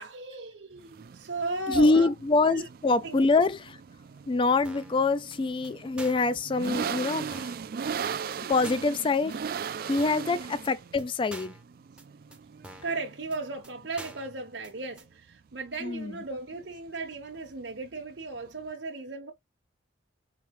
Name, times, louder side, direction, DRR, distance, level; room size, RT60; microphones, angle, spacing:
voice 1, 0.0-2.1 2.5-2.6 3.0-3.2 12.8-19.3, right 3 dB, 70° right, 0.9 m, -36 dB
sound 1, 0.8-18.7, right 6 dB, 55° right, 0.4 m, -39 dB
voice 2, 1.7-3.8 4.3-7.5 8.5-9.4 9.9-11.6 15.8-16.1, left 3 dB, 25° left, 0.3 m, -25 dB
sound 2, 4.6-5.0 5.3-5.4 5.6-5.7 6.0-6.3 6.6-6.7 7.0-7.1 7.3-7.6 8.0-8.1 8.3-8.4 8.6-9.0 9.3-9.4 9.6-9.7 10.0-10.3 10.6-10.7 11.0-11.1 11.3-11.6 12.0-12.1 12.3-12.4 12.6-13.0 13.3-13.4 13.6-13.7 14.0-14.3 14.6-14.7 15.0-15.1, right 2 dB, 5° right, 0.7 m, -46 dB
4.6 x 2.7 x 3.1 m
head